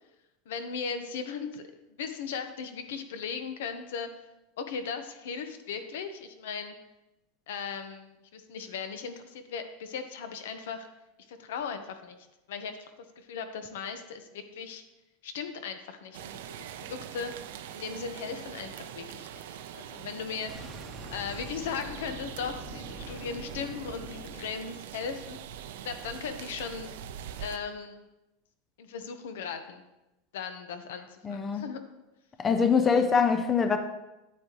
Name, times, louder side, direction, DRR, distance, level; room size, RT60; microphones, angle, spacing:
voice 1, 0.4-1.6 2.0-4.2 4.6-6.7 7.5-10.9 11.3-12.2 12.5-14.8 15.2-17.3 17.7-20.8 21.1-26.9 27.4-28.1 28.8-29.8 30.3-31.8, left 6 dB, 80° left, 8 dB, 1.0 m, -38 dB
sound 1, 16.1-27.6, right 9 dB, 70° right, 0.6 m, -43 dB
Boom, 20.5-25.3, right 1 dB, 10° right, 0.9 m, -44 dB
voice 2, 31.2-31.6 32.4-33.8, left 6 dB, 15° left, 7 dB, 0.5 m, -24 dB
9.4 x 8.7 x 3.1 m, 0.96 s
supercardioid pair, 170°, 0 cm